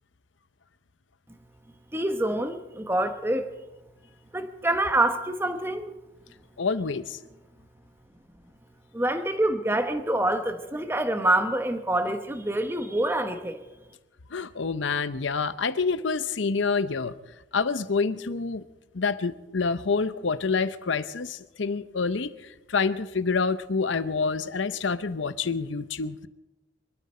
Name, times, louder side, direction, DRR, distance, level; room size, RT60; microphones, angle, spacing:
voice 1, 1.9-3.4 4.3-5.9 8.9-13.6, right 1 dB, 10° right, 7 dB, 1.1 m, -26 dB
voice 2, 6.6-7.2 14.3-17.1 17.5-18.6 18.9-22.3 22.7-26.3, left 4 dB, 80° left, 14 dB, 0.8 m, -27 dB
24.5 x 13.0 x 4.3 m, 1.0 s
head